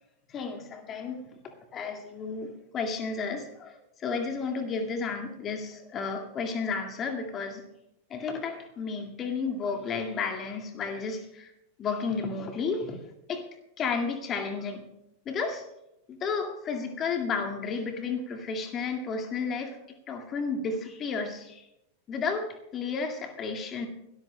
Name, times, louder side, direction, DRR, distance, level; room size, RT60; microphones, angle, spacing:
voice 1, 0.3-1.3 1.7-7.6 8.1-11.5 11.8-13.0 13.3-13.5 13.8-14.8 15.3-15.6 16.1-19.8 20.1-21.6 22.1-23.9, left 5 dB, 25° left, 5 dB, 1.9 m, -32 dB
30.0 x 13.5 x 2.2 m, 0.86 s
figure-of-eight pair, 90°, 0 cm